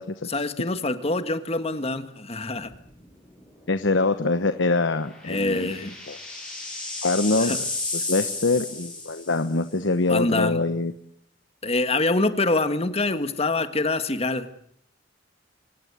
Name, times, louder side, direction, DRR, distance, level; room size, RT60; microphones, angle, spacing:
voice 1, 0.3-2.7 5.3-6.0 7.4-7.6 10.1-10.6 11.6-14.5, left 2 dB, 35° left, 10 dB, 1.7 m, -25 dB
sound 1, 2.7-3.1 3.4-3.5 4.9-9.6, left 2 dB, 5° left, 7.0 m, -33 dB
voice 2, 3.7-5.7 6.1-6.2 7.0-7.6 7.9-10.9, left 3 dB, 75° left, 10 dB, 1.1 m, -24 dB
25.0 x 18.5 x 8.3 m, 0.66 s
head